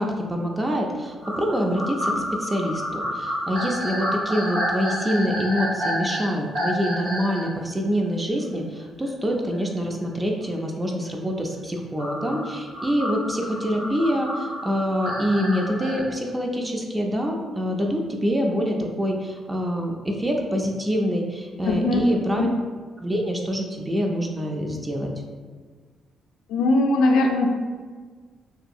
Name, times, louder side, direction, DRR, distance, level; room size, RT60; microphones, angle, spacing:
voice 1, 0.0-22.5 23.0-25.1, equal, 20° right, 1 dB, 0.3 m, -25 dB
sound 1, 1.2-7.5 8.0-8.1 9.5-9.6 12.0-16.0, equal, 90° right, 1.5 m, -29 dB
voice 2, 21.6-22.5 26.5-27.5, left 2 dB, 85° left, 3 dB, 0.3 m, -20 dB
2.7 x 2.3 x 2.6 m, 1.5 s
cardioid pair, 90°, 0 cm